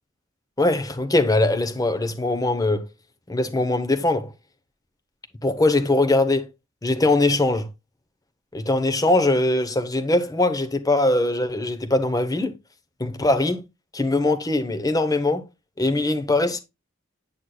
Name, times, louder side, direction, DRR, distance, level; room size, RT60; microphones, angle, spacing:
voice 1, 0.6-2.9 3.3-4.3 5.4-6.5 6.8-7.7 8.5-12.5 13.0-13.6 13.9-15.4 15.8-16.6, left 2 dB, 20° left, 0.8 m, -21 dB
8.9 x 6.4 x 2.2 m
head